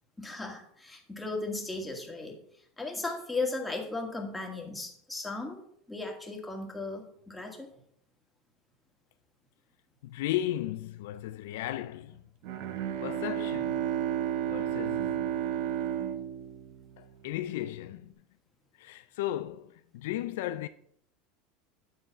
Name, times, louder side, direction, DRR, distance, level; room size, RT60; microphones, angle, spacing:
voice 1, 0.2-2.4 2.8-7.8, left 3 dB, 10° left, 1.9 m, -36 dB
voice 2, 10.0-12.2 13.0-13.8 14.5-15.2 17.0-18.1 18.7-20.7, left 13 dB, 75° left, 0.3 m, -35 dB
Bowed string instrument, 12.4-17.4, right 10 dB, 65° right, 0.7 m, -32 dB
9.3 x 3.8 x 5.5 m
hypercardioid pair, 95°, 0 cm